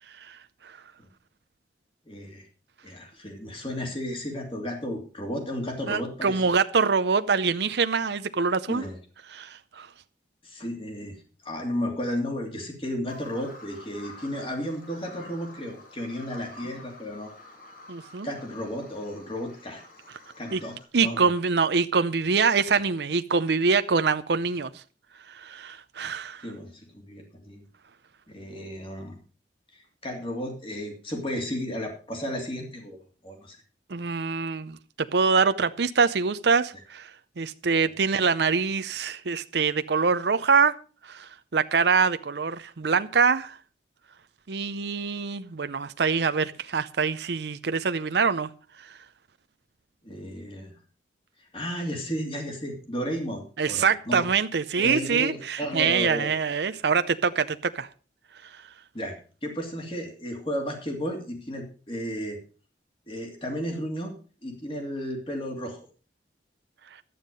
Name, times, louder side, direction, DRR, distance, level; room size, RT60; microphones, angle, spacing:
voice 1, 2.1-2.5 2.8-6.4 8.7-9.0 10.4-11.2 11.4-17.3 18.2-19.8 20.4-21.3 26.4-27.7 28.3-29.2 29.7-33.0 33.2-33.6 50.0-50.7 51.4-54.3 54.7-56.3 58.9-59.2 59.4-62.4 63.1-64.1 64.4-65.8, equal, 30° left, 2.8 m, -33 dB
voice 2, 5.9-8.8 9.3-9.9 17.9-18.3 20.5-20.6 20.9-24.7 25.3-26.5 33.9-37.1 37.4-40.8 41.0-43.6 44.5-48.5 53.6-57.9 58.4-58.5, right 5 dB, 70° right, 0.6 m, -24 dB
Bird vocalization bird call bird song, 13.1-20.8, left 2 dB, 50° left, 3.0 m, -48 dB
12.5 x 9.4 x 5.3 m
head